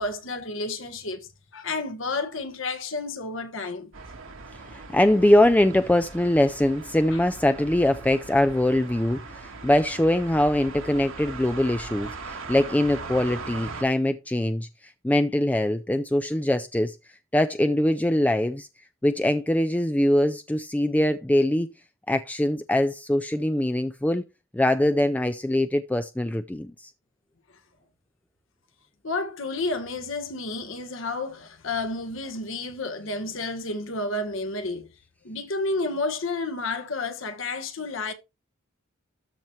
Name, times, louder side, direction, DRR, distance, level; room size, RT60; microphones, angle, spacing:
voice 1, 0.0-3.9 7.1-7.2 29.0-34.9 35.2-38.1, left 3 dB, 70° left, 1.5 m, -31 dB
sound 1, 3.9-13.8, right 3 dB, 70° right, 1.7 m, -40 dB
voice 2, 4.7-17.0 17.3-18.7 19.0-21.7 22.1-24.2 24.5-26.9, left 1 dB, 10° left, 0.4 m, -23 dB
13.0 x 4.4 x 3.2 m
head